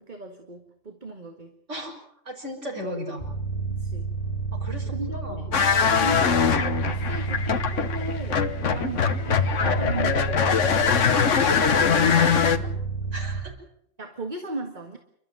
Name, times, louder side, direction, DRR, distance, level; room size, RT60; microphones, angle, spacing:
voice 1, 0.0-1.6 3.7-4.1 4.9-5.5 5.8-10.8 14.0-15.0, right 2 dB, 40° right, 5 dB, 2.0 m, -36 dB
voice 2, 2.2-3.2 4.5-5.5 8.6-9.0 11.1-12.7 13.1-13.5, equal, 70° right, 2 dB, 6.3 m, -36 dB
sound 1, 3.2-13.4, right 4 dB, 25° left, 3.9 m, -31 dB
sound 2, 5.5-12.6, left 6 dB, 70° left, 1.6 m, -22 dB
29.5 x 13.0 x 9.3 m, 0.74 s
omnidirectional pair, 1.3 m